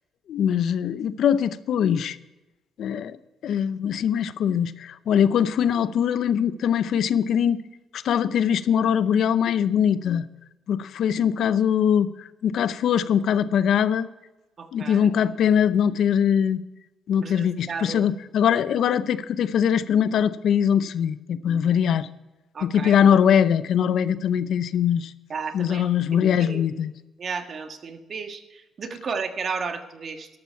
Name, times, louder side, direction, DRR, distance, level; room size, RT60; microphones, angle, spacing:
voice 1, 0.3-2.2 2.8-3.2 3.4-7.6 7.9-10.3 10.7-14.1 14.7-16.6 17.1-22.1 22.6-25.1 25.5-26.9, left 8 dB, 70° left, 15 dB, 0.6 m, -22 dB
voice 2, 14.6-15.1 17.2-18.0 22.5-23.0 25.3-26.6 27.2-30.3, right 5 dB, 50° right, 6 dB, 1.6 m, -33 dB
13.0 x 11.5 x 4.6 m, 1.0 s
cardioid pair, 90°, 0 cm